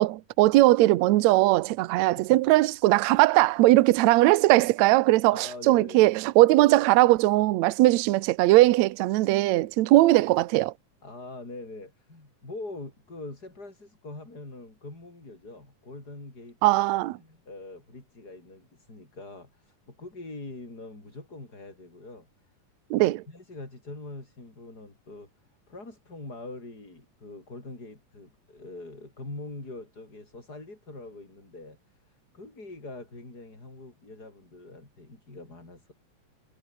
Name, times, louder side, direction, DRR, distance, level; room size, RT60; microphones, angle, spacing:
voice 1, 0.0-10.7 16.6-17.2 22.9-23.2, right 17 dB, 70° right, 1.8 m, -20 dB
voice 2, 5.3-6.1 11.0-16.6 17.2-22.3 22.9-25.3 25.7-31.8 32.0-35.9, left 2 dB, 25° left, 6.8 m, -43 dB
omnidirectional pair, 3.9 m